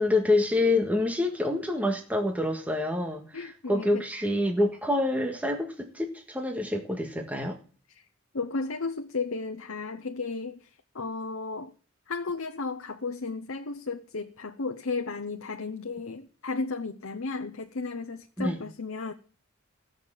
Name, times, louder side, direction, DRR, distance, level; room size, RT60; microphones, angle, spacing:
voice 1, 0.0-7.6 18.4-18.6, left 2 dB, 5° right, 1.6 m, -27 dB
voice 2, 3.3-4.0 7.9-8.0 8.3-11.7 12.1-19.1, left 4 dB, 70° left, 0.9 m, -34 dB
16.5 x 6.7 x 7.5 m
head